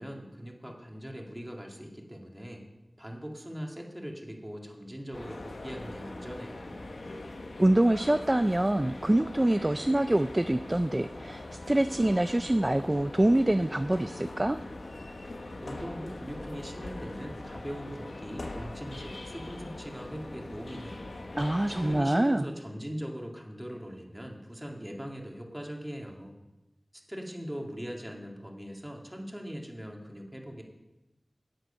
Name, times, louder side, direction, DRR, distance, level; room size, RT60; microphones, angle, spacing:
voice 1, 0.0-2.6 3.0-6.8 15.6-21.2 21.7-26.3 26.9-30.6, equal, 10° right, 1 dB, 1.9 m, -41 dB
sound 1, 5.1-22.0, left 2 dB, 80° left, 1.0 m, -42 dB
voice 2, 7.6-14.6 21.4-22.5, right 1 dB, 25° right, 11 dB, 0.3 m, -25 dB
11.5 x 8.0 x 5.5 m, 1.0 s
wide cardioid pair, 50°, 0 cm